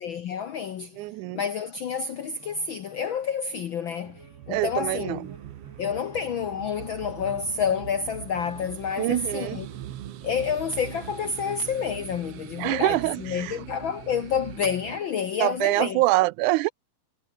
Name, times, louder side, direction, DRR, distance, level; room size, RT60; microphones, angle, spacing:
voice 1, 0.0-1.1 1.3-4.2 4.5-5.3 5.8-9.7 10.2-16.0, left 6 dB, 70° left, 1.2 m, -29 dB
voice 2, 1.0-1.4 4.5-5.3 9.0-9.6 12.6-13.6 15.4-16.7, right 19 dB, 90° right, 2.1 m, -25 dB
sound 1, 2.0-15.9, right 1 dB, 20° right, 7.0 m, -54 dB
sound 2, 4.0-15.0, right 12 dB, 65° right, 1.9 m, -42 dB
omnidirectional pair, 3.4 m